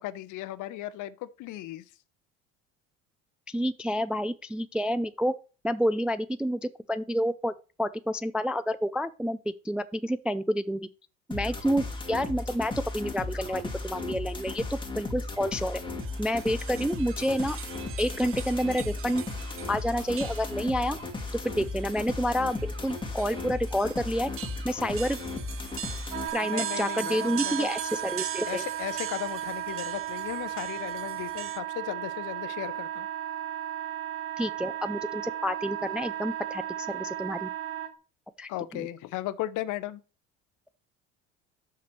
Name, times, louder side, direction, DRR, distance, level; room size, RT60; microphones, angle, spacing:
voice 1, 0.0-1.8 26.4-27.7 28.5-33.1 38.5-40.0, left 14 dB, 55° left, 0.9 m, -36 dB
voice 2, 3.5-5.3 5.6-7.5 7.8-9.4 9.6-10.8 11.3-15.8 16.2-17.6 18.0-19.2 19.7-21.0 21.3-24.3 24.6-25.2 26.3-28.6 34.4-37.5 38.4-38.9, equal, 5° right, 0.3 m, -29 dB
sound 1, 11.3-26.3, left 3 dB, 15° left, 2.3 m, -36 dB
sound 2, 16.0-31.6, right 10 dB, 35° right, 0.7 m, -42 dB
Wind instrument woodwind instrument, 26.1-37.9, right 11 dB, 55° right, 2.0 m, -35 dB
6.1 x 5.7 x 6.1 m
hypercardioid pair, 80°, 37 cm